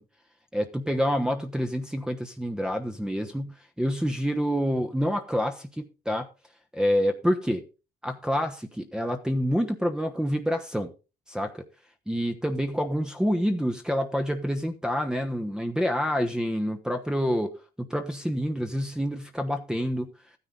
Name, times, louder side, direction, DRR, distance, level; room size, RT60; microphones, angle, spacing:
voice 1, 0.5-6.3 6.7-7.6 8.0-10.9 11.3-11.7 12.1-17.5 17.8-20.1, equal, 5° right, 1.1 m, -27 dB
14.0 x 9.8 x 3.9 m
cardioid pair, 110°, 17 cm